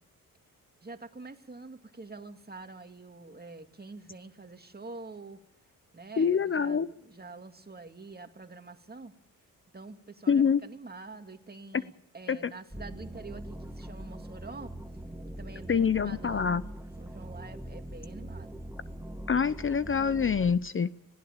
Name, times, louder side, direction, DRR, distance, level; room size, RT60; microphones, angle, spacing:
voice 1, 0.8-5.4 5.9-9.1 9.7-14.7 15.4-16.5 17.0-18.6, right 3 dB, 25° right, 7 dB, 2.3 m, -46 dB
voice 2, 6.2-6.9 10.3-10.6 12.3-12.5 15.7-16.6 19.3-20.9, left 6 dB, 35° left, 16 dB, 0.7 m, -25 dB
sound 1, 12.7-20.5, right 1 dB, 10° right, 1.8 m, -42 dB
20.0 x 16.5 x 8.8 m, 0.77 s
cardioid pair, 70°, 35 cm